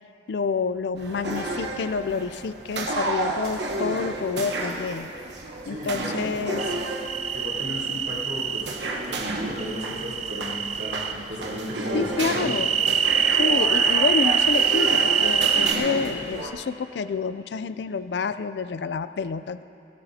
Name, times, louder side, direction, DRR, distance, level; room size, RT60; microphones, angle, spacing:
voice 1, 0.3-5.1 5.7-6.7 11.9-12.7 13.4-19.6, left 5 dB, 75° left, 13 dB, 0.4 m, -28 dB
sound 1, 1.0-16.5, right 2 dB, 85° right, 1.1 m, -31 dB
voice 2, 5.6-6.8 7.3-8.7 9.1-12.5, equal, 70° right, -8 dB, 3.4 m, -35 dB
sound 2, 6.6-8.6 9.6-11.1 12.4-15.7, right 7 dB, 40° right, 0.4 m, -24 dB
18.5 x 16.5 x 2.8 m, 2.7 s
head